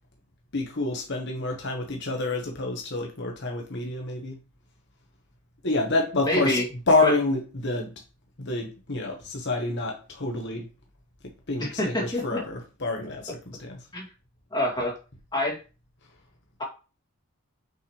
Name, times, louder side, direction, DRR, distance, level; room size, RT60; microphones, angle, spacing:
voice 1, 0.5-4.4 5.6-7.9 8.4-10.7 11.5-13.9, left 2 dB, 50° left, 1.3 m, -28 dB
voice 2, 6.3-6.6 7.0-7.1 11.6-12.4 13.9-14.1 14.5-14.9 15.3-15.6, left 1 dB, 20° left, 2.3 m, -26 dB
6.6 x 5.6 x 3.2 m
head